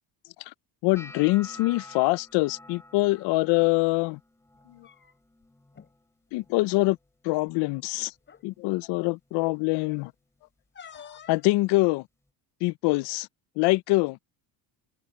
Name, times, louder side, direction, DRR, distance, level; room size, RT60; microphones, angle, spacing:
voice 1, 0.8-4.2 6.3-7.0 7.2-8.1 8.4-10.1 11.3-12.0 12.6-13.3 13.6-14.2, left 22 dB, 70° left, 0.5 m, -24 dB
sound 1, 0.9-7.0 7.3-7.8 8.2-8.7 9.4-9.6 11.3-11.4, left 2 dB, 5° left, 5.9 m, -50 dB
sound 2, 3.1-3.3 4.5-5.4 5.7-5.9 6.3-6.5 7.5-7.6 8.2-8.5 10.7-11.5, left 7 dB, 25° left, 5.0 m, -49 dB
cardioid pair, 170°, 42 cm